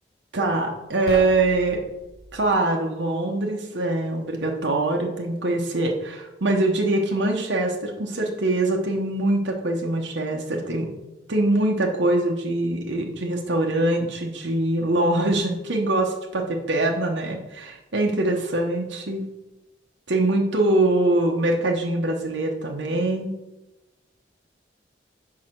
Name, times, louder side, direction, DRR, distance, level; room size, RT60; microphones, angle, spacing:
voice 1, 0.3-1.8 2.3-10.9 11.3-19.2 20.1-23.3, right 2 dB, 80° right, 1 dB, 1.0 m, -23 dB
sound 1, 1.0-2.5, left 2 dB, 55° left, 0.7 m, -39 dB
4.8 x 4.8 x 5.9 m, 1.0 s
head